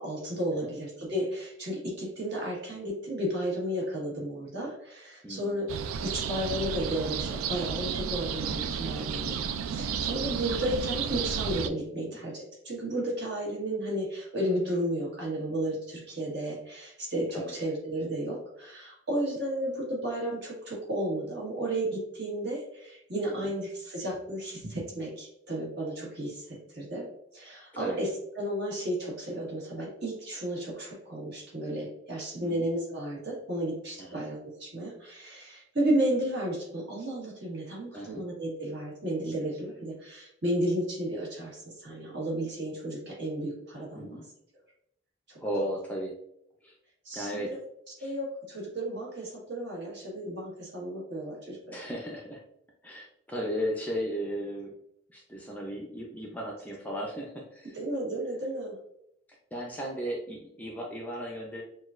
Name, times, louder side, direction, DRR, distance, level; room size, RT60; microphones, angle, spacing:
voice 1, 0.0-5.6 6.0-27.0 27.3-28.1 28.3-44.2 45.3-45.4 47.0-47.4 48.0-51.8 57.7-58.8, right 1 dB, 55° right, -3 dB, 1.5 m, -33 dB
voice 2, 5.2-5.7 11.9-12.2 17.3-17.6 23.4-23.5 27.7-28.0 32.4-32.7 34.0-34.2 37.9-38.2 43.9-44.3 45.4-46.1 46.6-46.8 47.1-47.6 48.0-48.2 51.7-52.4 52.8-54.7 55.1-57.7 59.5-61.6, equal, 10° left, -1 dB, 0.5 m, -35 dB
sound 1, 5.7-11.7, right 7 dB, 90° right, 0.3 m, -32 dB
6.1 x 2.3 x 2.4 m, 0.75 s
head